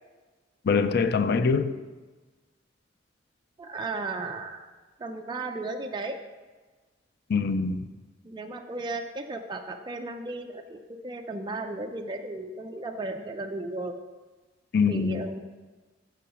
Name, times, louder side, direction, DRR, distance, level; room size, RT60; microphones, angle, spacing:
voice 1, 0.6-1.8 7.3-7.9 14.7-15.3, left 5 dB, 60° left, 11 dB, 0.4 m, -24 dB
voice 2, 3.6-4.7 5.0-6.2 8.2-14.0 14.9-15.4, right 2 dB, 25° right, 4 dB, 0.4 m, -35 dB
7.1 x 5.7 x 6.2 m, 1.3 s
head